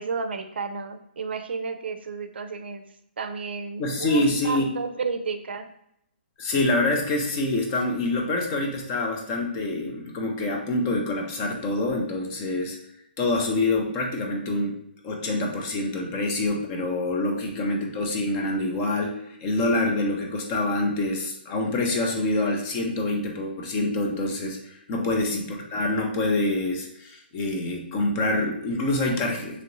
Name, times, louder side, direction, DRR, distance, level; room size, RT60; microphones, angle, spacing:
voice 1, 0.0-2.8 3.2-5.7 17.3-17.7 25.0-25.3, right 4 dB, 75° right, 8 dB, 0.4 m, -32 dB
voice 2, 3.8-4.7 6.4-12.8 13.2-14.8 15.0-29.6, left 2 dB, 15° left, 1 dB, 0.3 m, -26 dB
2.9 x 2.5 x 2.9 m, 0.75 s
hypercardioid pair, 175°, 6 cm